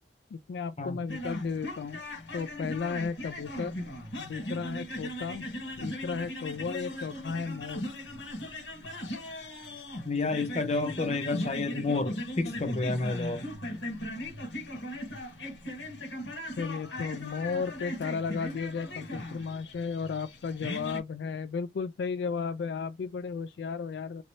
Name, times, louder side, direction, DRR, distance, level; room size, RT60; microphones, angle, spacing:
voice 1, 0.3-2.0 2.3-3.7 4.2-7.9 16.6-24.2, left 5 dB, 70° left, 0.3 m, -34 dB
sound 1, 1.1-21.0, left 1 dB, 85° left, 1.8 m, -38 dB
voice 2, 10.0-13.4, left 3 dB, 35° left, 0.7 m, -30 dB
2.9 x 2.6 x 3.1 m
head